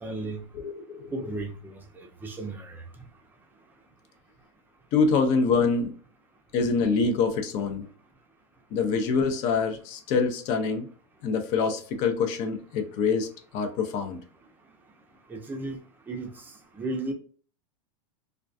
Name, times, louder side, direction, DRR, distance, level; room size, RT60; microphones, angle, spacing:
voice 1, 0.0-0.4 1.1-2.8 15.3-15.8 16.1-16.4 16.8-17.1, right 2 dB, 10° right, 0.5 m, -34 dB
voice 2, 0.5-1.3 4.9-5.9 6.5-7.9 8.7-10.9 11.2-14.2, left 5 dB, 45° left, 0.6 m, -25 dB
2.3 x 2.2 x 2.5 m
supercardioid pair, 125°, 17 cm